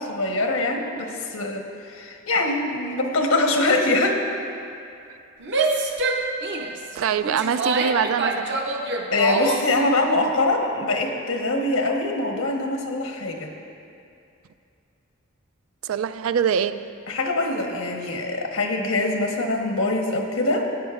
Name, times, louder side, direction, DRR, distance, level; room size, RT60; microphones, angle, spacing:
voice 1, 0.0-4.2 9.1-13.5 17.1-20.6, left 2 dB, 90° left, 1 dB, 1.3 m, -23 dB
Female speech woman speaking / Yell, 5.4-9.8, right 2 dB, 55° right, 0.8 m, -25 dB
voice 2, 7.0-8.6 15.8-16.9, right 7 dB, 85° right, 13 dB, 0.4 m, -24 dB
16.5 x 9.5 x 2.5 m, 2.5 s
head